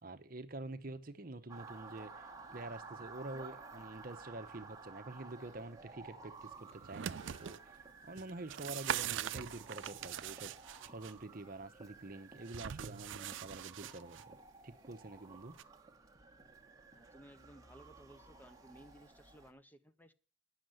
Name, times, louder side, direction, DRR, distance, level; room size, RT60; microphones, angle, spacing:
voice 1, 0.0-7.8 8.0-14.4 14.6-15.6, right 2 dB, 45° right, 0.8 m, -47 dB
Motor vehicle (road) / Siren, 1.5-19.5, right 4 dB, 15° right, 1.2 m, -54 dB
sound 1, 6.7-7.6 8.2-11.1 12.5-14.2 15.6-15.7, right 9 dB, 75° right, 0.5 m, -41 dB
voice 2, 16.9-20.1, equal, 10° left, 0.5 m, -59 dB
10.0 x 6.5 x 7.7 m
head